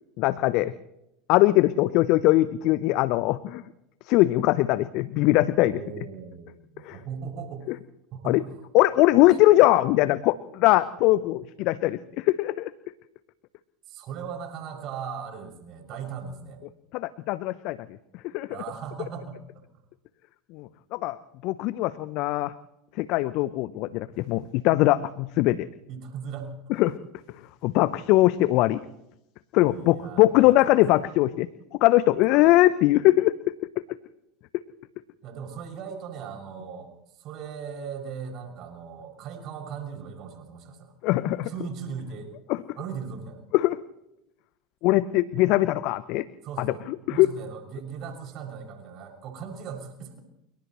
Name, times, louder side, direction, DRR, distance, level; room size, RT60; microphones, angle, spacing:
voice 1, 0.2-0.7 1.3-3.6 4.1-5.8 6.8-7.0 8.2-8.4 8.7-12.7 16.9-17.8 18.3-18.5 20.5-21.2 21.4-22.5 23.0-25.7 26.8-27.0 27.6-28.8 29.5-31.5 31.8-33.5 41.0-41.5 42.5-42.6 43.5-43.8 44.8-46.2 46.6-46.7 47.1-47.3, left 17 dB, 55° left, 16 dB, 0.8 m, -21 dB
voice 2, 5.6-7.7 8.1-8.6 13.8-16.6 18.5-19.6 25.9-26.5 29.5-30.7 32.3-32.6 35.2-40.9 41.4-42.3 42.7-43.4 46.4-46.8 47.1-50.2, right 6 dB, 50° right, 3 dB, 6.7 m, -38 dB
30.0 x 29.5 x 3.2 m, 0.85 s
figure-of-eight pair, 75°, 0 cm